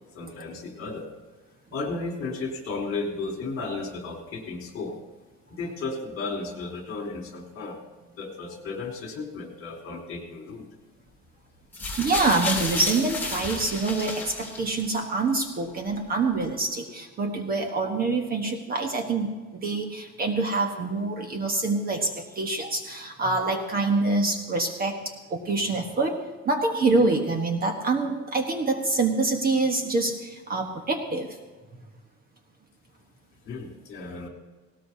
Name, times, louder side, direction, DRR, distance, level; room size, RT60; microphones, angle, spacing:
voice 1, 0.1-1.1 1.7-4.9 5.5-7.8 8.2-10.7 33.5-34.3, left 3 dB, 45° left, -1 dB, 3.5 m, -34 dB
sound 1, 11.7-15.0 15.9-16.0, left 3 dB, 5° left, 2.9 m, -32 dB
voice 2, 12.0-26.2 26.4-31.3, right 3 dB, 30° right, 4 dB, 1.2 m, -26 dB
18.5 x 18.0 x 2.8 m, 1.3 s
cardioid pair, 170°, 31 cm